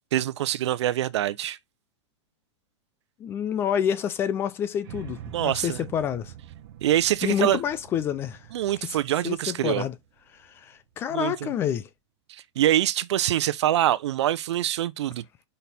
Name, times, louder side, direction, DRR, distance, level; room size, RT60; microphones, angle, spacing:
voice 1, 0.1-1.6 5.3-5.8 6.8-7.6 8.5-9.9 11.1-11.5 12.3-15.5, right 12 dB, 70° right, 0.7 m, -25 dB
voice 2, 3.2-6.3 7.2-8.4 8.8-9.0 9.2-9.9 10.4-11.9, left 9 dB, 15° left, 0.3 m, -28 dB
sound 1, 4.8-11.0, right 12 dB, 50° right, 1.1 m, -45 dB
5.3 x 4.2 x 4.1 m
supercardioid pair, 165°, 15 cm